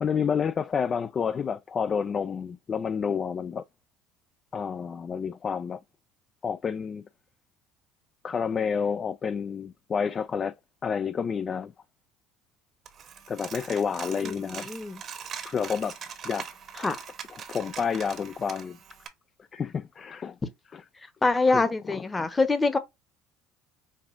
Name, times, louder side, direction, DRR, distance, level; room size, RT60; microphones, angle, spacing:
voice 1, 0.0-3.6 4.5-5.8 6.4-7.0 8.2-10.5 10.8-11.7 13.3-14.7 15.4-16.0 16.2-16.5 17.5-18.8 19.5-20.4 20.7-20.8 21.5-22.3, left 6 dB, 35° left, 0.3 m, -29 dB
Coin (dropping), 12.9-19.1, right 7 dB, 45° right, 0.9 m, -42 dB
voice 2, 14.2-15.0 16.8-17.0 21.2-22.8, left 3 dB, 20° left, 1.0 m, -25 dB
5.2 x 2.5 x 2.5 m
supercardioid pair, 90°, 0 cm